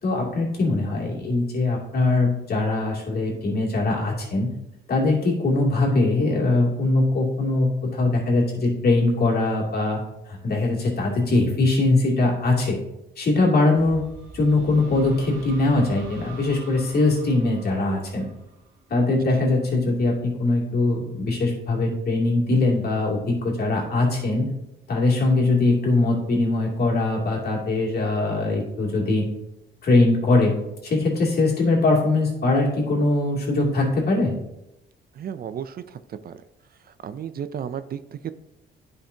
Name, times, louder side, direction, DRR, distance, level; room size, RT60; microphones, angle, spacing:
voice 1, 0.0-4.5 4.9-10.0 10.3-12.8 13.2-14.0 14.3-18.3 18.9-24.5 24.9-29.2 29.8-34.3, left 2 dB, 50° left, -3 dB, 2.6 m, -21 dB
sound 1, 13.8-19.4, right 4 dB, 80° right, 2.6 m, -44 dB
voice 2, 35.1-36.4 36.8-38.3, right 8 dB, 50° right, 13 dB, 0.4 m, -34 dB
10.0 x 5.5 x 2.8 m, 0.86 s
cardioid pair, 90°, 20 cm